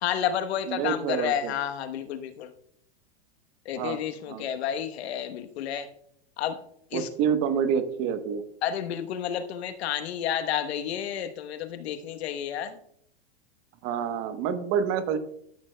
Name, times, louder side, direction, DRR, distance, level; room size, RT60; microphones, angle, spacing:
voice 1, 0.0-2.5 3.7-5.9 6.4-6.6 6.9-7.1 8.6-12.8, left 9 dB, 75° left, 9 dB, 1.1 m, -30 dB
voice 2, 0.7-1.6 3.7-4.5 6.9-8.4 13.8-15.2, right 7 dB, 40° right, 10 dB, 1.0 m, -28 dB
13.0 x 8.6 x 2.2 m, 0.69 s
hypercardioid pair, 130°, 33 cm